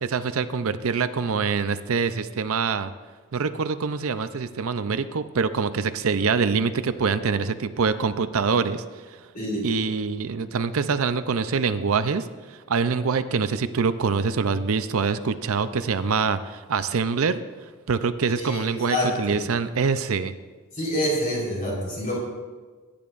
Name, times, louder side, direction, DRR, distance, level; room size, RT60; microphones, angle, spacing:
voice 1, 0.0-2.9 3.3-9.2 9.6-17.4 17.9-20.3, right 5 dB, 70° right, 11 dB, 0.5 m, -25 dB
voice 2, 9.3-9.7 18.4-19.4 20.7-22.2, equal, 40° left, -4 dB, 4.2 m, -27 dB
21.5 x 10.0 x 2.5 m, 1.4 s
head